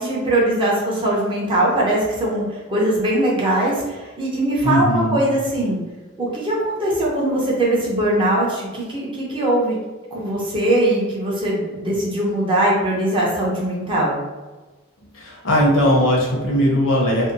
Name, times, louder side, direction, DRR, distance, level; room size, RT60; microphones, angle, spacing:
voice 1, 0.0-5.8 6.2-9.8 10.1-14.1, right 1 dB, 25° right, -5 dB, 0.6 m, -21 dB
voice 2, 4.6-5.2 15.1-17.3, equal, 65° left, -3 dB, 0.8 m, -18 dB
2.6 x 2.1 x 2.6 m, 1.3 s
head